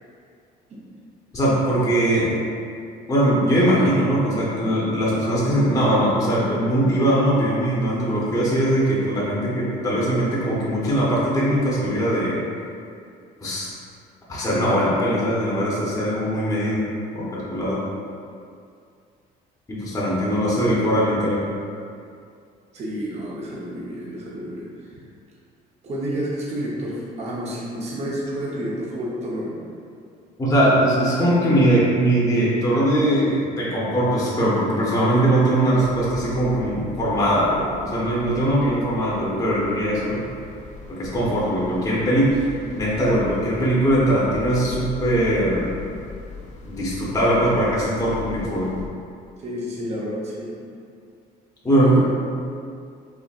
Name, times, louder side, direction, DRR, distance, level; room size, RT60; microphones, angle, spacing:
voice 1, 1.3-2.3 3.1-12.4 13.4-13.7 14.3-16.8 17.1-17.8 19.7-21.5 30.4-40.2 40.9-42.4 42.7-45.7 46.6-48.7 51.6-52.0, right 1 dB, 20° left, -7 dB, 0.8 m, -21 dB
voice 2, 22.7-25.0 25.8-29.6 49.4-50.6 51.7-52.0, equal, 40° right, -5 dB, 0.7 m, -30 dB
sound 1, 35.8-48.9, left 1 dB, 45° left, 0.5 m, -39 dB
4.1 x 2.7 x 2.4 m, 2.3 s
cardioid pair, 110°, 17 cm